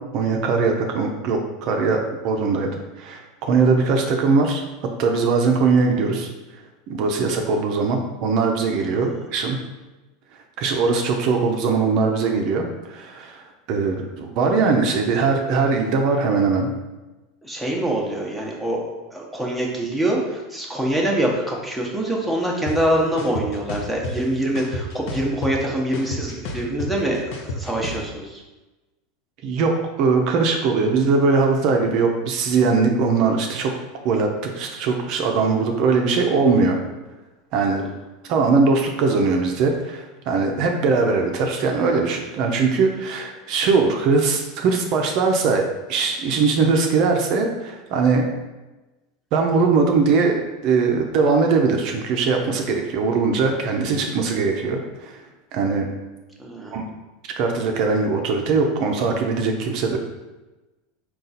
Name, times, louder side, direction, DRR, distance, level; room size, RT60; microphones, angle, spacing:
voice 1, 0.1-4.6 5.0-6.3 6.9-9.6 10.6-16.7 29.4-29.7 30.0-33.7 34.0-36.8 37.5-37.9 38.3-45.6 45.9-48.3 49.3-55.2 55.5-55.9 56.7-56.8 57.4-60.0, right 4 dB, 55° right, 3 dB, 0.5 m, -20 dB
voice 2, 17.4-28.4 56.4-56.8, right 1 dB, ahead, -2 dB, 0.8 m, -25 dB
sound 1, 22.7-22.8 23.2-24.1 24.6-25.6 25.9-28.0, left 3 dB, 65° left, 0.7 m, -30 dB
3.8 x 2.3 x 4.1 m, 1.1 s
supercardioid pair, 115°, 0 cm